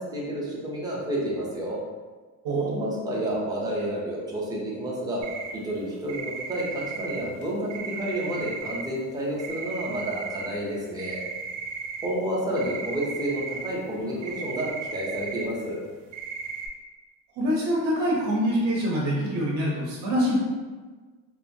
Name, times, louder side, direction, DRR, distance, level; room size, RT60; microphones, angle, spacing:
voice 1, 0.0-1.8 2.7-5.2 5.5-11.2 12.0-15.8, right 1 dB, 10° right, -4 dB, 0.4 m, -30 dB
voice 2, 2.4-2.8 17.4-20.4, equal, 50° right, -4 dB, 0.6 m, -25 dB
sound 1, 5.2-5.6 6.1-8.9 9.2-10.6 11.0-15.5 15.9-16.7, right 4 dB, 85° right, 0.7 m, -35 dB
3.0 x 2.2 x 2.6 m, 1.4 s
cardioid pair, 170°, 34 cm